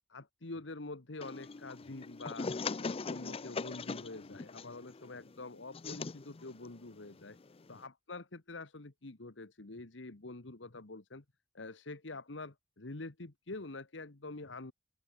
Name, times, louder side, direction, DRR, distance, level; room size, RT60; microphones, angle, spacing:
voice 1, 0.1-7.4 7.7-11.2 11.5-14.7, left 2 dB, 75° left, 1.5 m, -46 dB
sound 1, 1.2-7.9, left 4 dB, 30° left, 0.5 m, -41 dB
open air
head